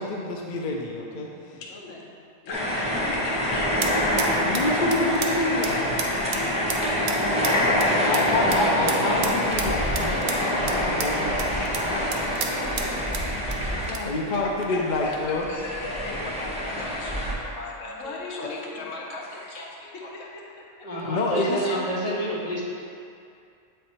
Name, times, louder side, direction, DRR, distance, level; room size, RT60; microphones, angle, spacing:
voice 1, 0.0-1.6 4.4-6.0 8.1-11.5 11.9-12.1 13.9-15.5 21.0-21.6, left 2 dB, 55° left, -1 dB, 0.5 m, -28 dB
voice 2, 1.5-2.0 2.4-4.7 6.3-8.0 11.0-11.1 12.1-13.3 14.0-20.8 21.4-21.8, left 2 dB, 75° left, -1 dB, 1.1 m, -38 dB
sound 1, 2.5-14.4 14.7-17.3, equal, 5° right, 0.5 m, -25 dB
sound 2, 3.0-14.7, right 5 dB, 65° right, 0.7 m, -36 dB
voice 3, 20.8-22.6, right 1 dB, 30° left, -6 dB, 1.2 m, -28 dB
7.8 x 3.4 x 4.2 m, 2.5 s
omnidirectional pair, 1.3 m